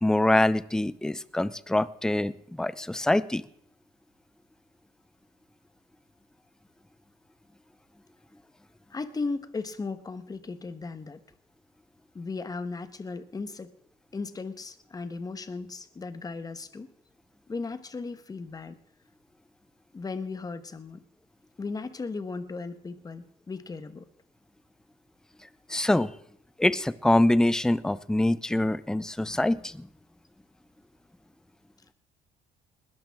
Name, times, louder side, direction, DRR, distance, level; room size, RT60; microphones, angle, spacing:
voice 1, 0.0-2.3 2.6-3.4 25.7-26.1 26.6-29.9, left 1 dB, 5° left, 17 dB, 0.5 m, -24 dB
voice 2, 8.9-11.2 12.1-13.7 14.1-16.9 17.5-18.8 19.9-21.0 21.6-24.0, left 4 dB, 20° left, 11 dB, 1.2 m, -36 dB
20.0 x 12.0 x 3.6 m, 0.66 s
cardioid pair, 110°, 17 cm